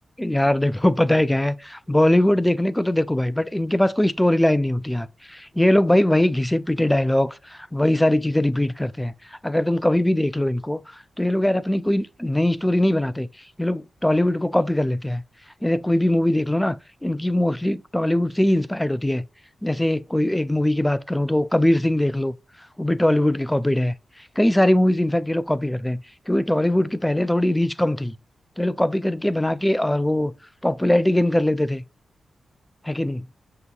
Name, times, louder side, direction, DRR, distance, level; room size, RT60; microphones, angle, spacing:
voice 1, 0.2-13.3 13.6-15.2 15.6-16.8 17.0-19.3 19.6-22.3 22.8-23.9 24.4-28.1 28.6-30.3 30.6-31.8 32.8-33.3, left 1 dB, 10° left, 0.3 m, -21 dB
5.9 x 2.8 x 2.3 m
cardioid pair, 65°, 0 cm